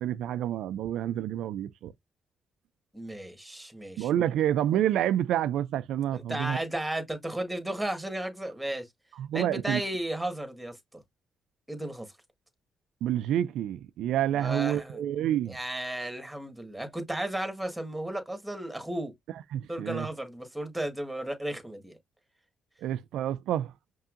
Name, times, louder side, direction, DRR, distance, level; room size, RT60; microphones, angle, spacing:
voice 1, 0.0-1.9 4.0-6.6 9.2-9.8 13.0-15.6 19.5-20.1 22.8-23.7, right 11 dB, 80° right, 0.3 m, -28 dB
voice 2, 2.9-4.1 6.1-8.9 9.3-11.0 11.7-12.1 14.3-15.1 15.5-19.1 19.7-22.0, right 1 dB, 5° right, 1.6 m, -34 dB
5.5 x 2.6 x 2.5 m
cardioid pair, 90°, 0 cm